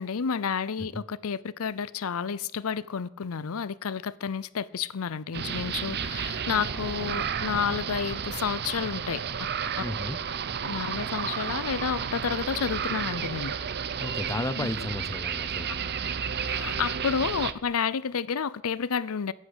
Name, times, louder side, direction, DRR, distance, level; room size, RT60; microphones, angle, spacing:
voice 1, 0.0-9.2 10.6-13.5 14.5-14.7 16.5-19.3, left 6 dB, 90° left, 0.6 m, -30 dB
sound 1, 5.3-17.5, right 7 dB, 50° right, 0.7 m, -32 dB
voice 2, 9.8-10.2 14.0-15.7, left 1 dB, 15° left, 0.5 m, -33 dB
11.0 x 8.7 x 7.9 m
head